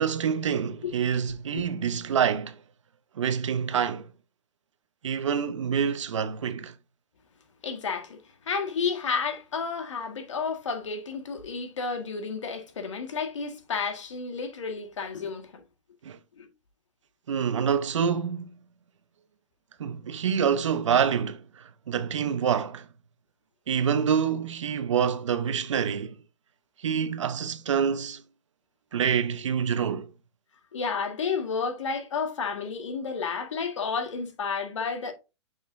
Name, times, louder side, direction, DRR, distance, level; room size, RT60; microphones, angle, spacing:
voice 1, 0.0-2.6 3.2-4.1 5.0-6.7 16.0-16.2 17.3-18.5 19.8-22.8 23.7-26.1 26.8-28.2 28.9-30.1, right 7 dB, 85° right, 0.9 m, -26 dB
voice 2, 7.6-15.6 16.4-16.5 30.7-35.1, left 5 dB, 85° left, 1.8 m, -31 dB
6.6 x 5.4 x 2.6 m
hypercardioid pair, 180°, 15 cm